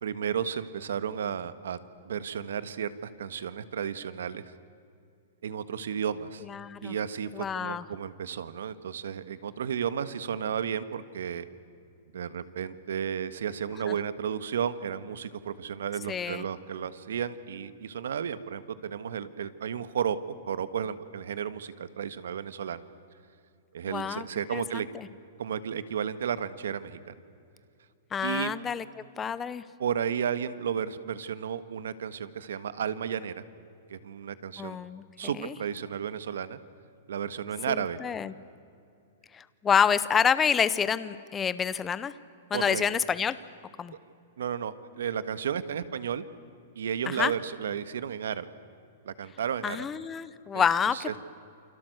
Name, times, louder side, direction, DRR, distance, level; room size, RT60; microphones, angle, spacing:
voice 1, 0.0-1.8 2.0-4.4 5.4-6.4 6.8-11.5 12.1-22.8 23.7-24.9 25.4-27.1 28.2-28.5 29.8-33.4 33.9-34.8 35.2-36.6 37.1-38.0 42.5-42.8 44.4-46.2 46.7-48.5 49.0-49.9 50.5-50.6 50.9-51.2, right 8 dB, 80° right, 14 dB, 1.6 m, -33 dB
voice 2, 6.4-6.9 7.3-7.8 13.9-14.0 16.1-16.4 23.9-24.3 24.5-25.1 28.1-28.8 29.2-29.6 34.6-35.0 35.4-35.5 37.7-38.3 39.3-42.1 42.5-43.3 43.8-43.9 47.1-47.3 49.6-51.2, left 7 dB, 10° left, 15 dB, 0.7 m, -28 dB
29.0 x 25.5 x 8.0 m, 2.5 s
supercardioid pair, 180°, 0 cm